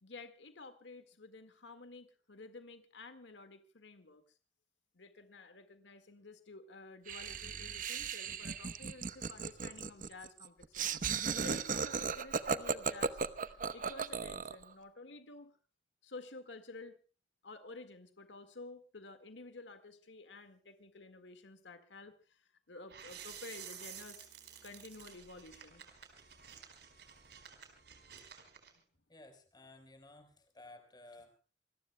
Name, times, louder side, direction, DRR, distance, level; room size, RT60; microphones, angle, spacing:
voice 1, 0.0-4.2 4.9-13.2 13.7-15.5 16.0-17.0 17.4-24.2 24.6-25.8, left 3 dB, 85° left, 8 dB, 1.8 m, -52 dB
Laughter, 7.1-14.6, right 5 dB, 50° right, 0.9 m, -36 dB
sound 1, 22.9-28.7, right 8 dB, 65° right, 4.4 m, -52 dB
voice 2, 29.1-31.4, left 2 dB, 25° left, 5 dB, 4.3 m, -56 dB
27.5 x 21.0 x 2.2 m, 0.35 s
head